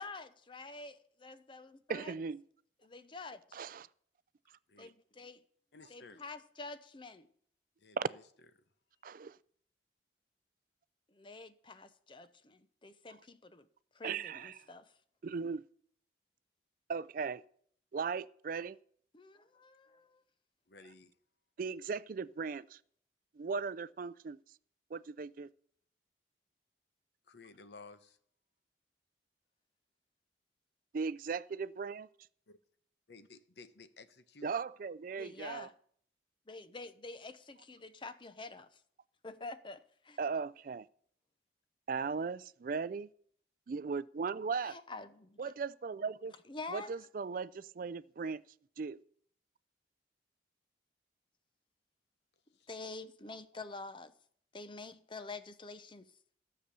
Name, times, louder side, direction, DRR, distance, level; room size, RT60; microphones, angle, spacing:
voice 1, 0.0-0.9 1.2-2.1 2.8-3.6 4.8-5.4 5.9-7.3 11.1-13.7 13.9-14.9 19.1-20.2 35.2-35.7 36.5-38.8 39.2-40.2 44.6-45.5 46.5-46.9 52.7-54.1 54.5-56.1, left 3 dB, 30° left, 0.6 m, -47 dB
voice 2, 1.9-2.4 3.5-3.9 8.0-8.1 9.0-9.4 14.0-14.7 15.2-15.6 16.9-17.4 17.9-18.8 21.6-22.8 23.4-24.4 24.9-25.5 30.9-32.1 34.4-35.7 40.2-40.9 41.9-43.1 43.7-44.8 45.4-46.3 46.7-48.4 48.8-49.0, right 5 dB, 50° right, 0.4 m, -37 dB
voice 3, 5.7-6.2 7.8-8.2 20.7-21.1 27.3-28.2 32.5-32.6 33.1-34.5 52.5-52.7, left 3 dB, 70° left, 0.9 m, -55 dB
13.0 x 6.8 x 6.8 m
head